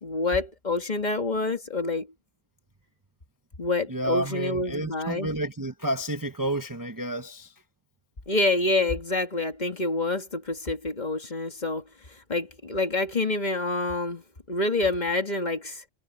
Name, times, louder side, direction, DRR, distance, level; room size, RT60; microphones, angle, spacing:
voice 1, 0.0-2.1 3.6-5.3 8.3-11.8 12.1-14.2 14.5-15.8, left 2 dB, 30° left, 1.8 m, -27 dB
voice 2, 3.9-7.6, right 1 dB, 15° right, 0.8 m, -30 dB
omnidirectional pair, 1.5 m